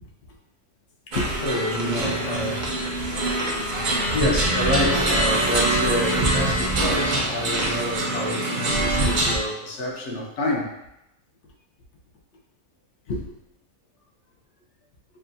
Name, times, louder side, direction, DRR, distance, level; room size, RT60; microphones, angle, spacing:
voice 1, 1.1-3.1 4.1-10.7 13.1-13.3, left 1 dB, 60° left, 0.9 m, -28 dB
sound 1, 1.1-9.4, right 2 dB, 45° right, 0.6 m, -24 dB
6.0 x 2.2 x 2.6 m
omnidirectional pair, 1.6 m